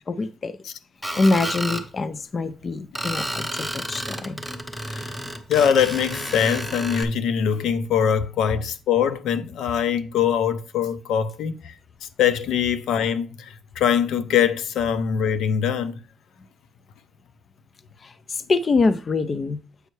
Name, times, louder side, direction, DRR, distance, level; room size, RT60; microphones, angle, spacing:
voice 1, 0.1-0.6 1.2-4.4 18.0-19.6, left 3 dB, 25° left, 0.3 m, -24 dB
Screech, 1.0-1.9 3.0-7.0, right 1 dB, ahead, 0.7 m, -31 dB
voice 2, 5.5-11.7 12.0-16.0, left 8 dB, 75° left, 0.6 m, -23 dB
7.9 x 5.4 x 3.2 m
cardioid pair, 175°, 0 cm